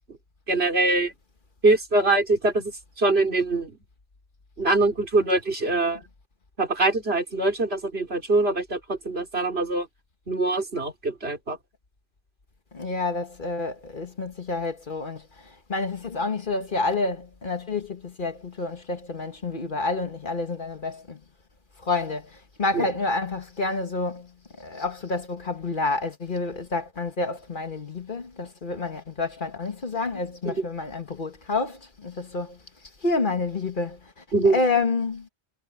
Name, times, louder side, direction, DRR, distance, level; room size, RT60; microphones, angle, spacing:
voice 1, 0.5-1.1 1.6-2.7 3.0-3.7 4.6-6.0 6.6-9.9 10.3-11.6 22.7-22.8 30.5-30.6 34.3-34.6, right 2 dB, 65° right, 3.9 m, -23 dB
voice 2, 12.7-21.2 21.8-24.3 24.6-32.6 33.0-34.1 34.5-35.3, left 3 dB, 50° left, 1.6 m, -29 dB
omnidirectional pair, 1.1 m